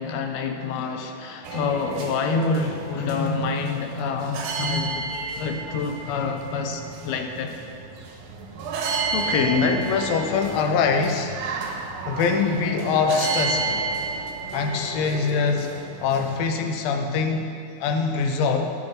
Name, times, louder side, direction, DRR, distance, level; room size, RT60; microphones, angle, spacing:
voice 1, 0.0-7.6, left 4 dB, 90° left, 5 dB, 2.1 m, -27 dB
sound 1, 1.4-16.4, right 4 dB, 85° right, 2.4 m, -31 dB
voice 2, 9.1-11.3 12.0-13.9 14.5-15.7 16.0-18.7, left 5 dB, 75° left, 4 dB, 1.7 m, -23 dB
11.5 x 6.5 x 4.3 m, 2.3 s
omnidirectional pair, 3.6 m